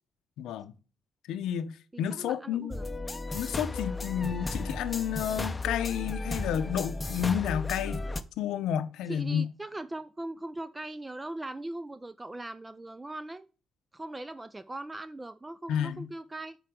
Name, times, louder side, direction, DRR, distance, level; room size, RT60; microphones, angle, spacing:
voice 1, 0.4-0.7 1.3-2.7 3.3-8.0 8.4-9.4 15.7-16.1, left 9 dB, 85° left, 0.6 m, -31 dB
voice 2, 1.9-2.9 9.1-13.5 13.9-16.6, right 2 dB, 15° right, 0.3 m, -40 dB
sound 1, 2.7-8.2, left 2 dB, 20° left, 0.6 m, -34 dB
7.8 x 4.6 x 4.9 m
cardioid pair, 90°, 0 cm